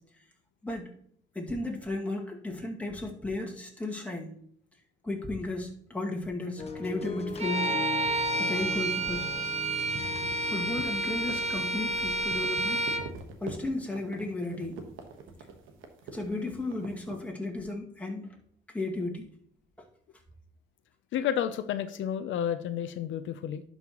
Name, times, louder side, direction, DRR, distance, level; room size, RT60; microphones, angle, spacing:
voice 1, 1.3-4.4 5.0-7.8 8.4-9.3 10.4-12.8 13.4-14.8 16.1-18.3 18.7-19.3, left 2 dB, 5° left, -1 dB, 2.1 m, -34 dB
sound 1, 6.6-12.7 13.3-13.4, left 4 dB, 30° left, 1.0 m, -40 dB
Bowed string instrument, 7.4-13.1, right 2 dB, 35° right, 1.1 m, -30 dB
sound 2, 9.8-17.2, right 5 dB, 90° right, 1.3 m, -44 dB
voice 2, 21.1-23.6, left 9 dB, 75° left, 10 dB, 0.6 m, -31 dB
11.5 x 5.5 x 3.0 m, 0.65 s
cardioid pair, 90°, 20 cm